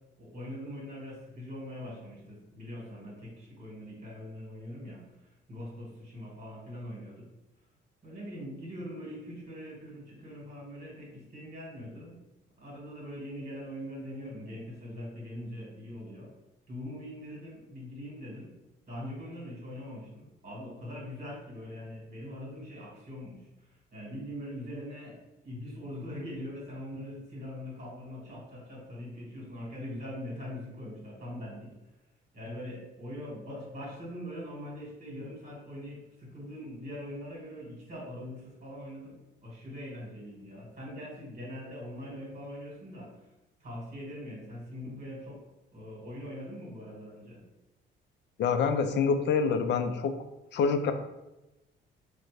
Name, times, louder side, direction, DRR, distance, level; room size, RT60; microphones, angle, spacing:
voice 1, 0.2-7.3 8.0-12.2 12.6-16.3 16.7-18.5 18.9-23.5 23.9-25.2 25.4-31.7 32.3-39.2 39.4-43.1 43.6-45.4 45.7-47.4, equal, 35° right, -5 dB, 1.3 m, -42 dB
voice 2, 48.4-50.1 50.5-50.9, left 5 dB, 60° left, 8 dB, 0.4 m, -26 dB
3.9 x 2.1 x 3.1 m, 0.99 s
cardioid pair, 90°, 20 cm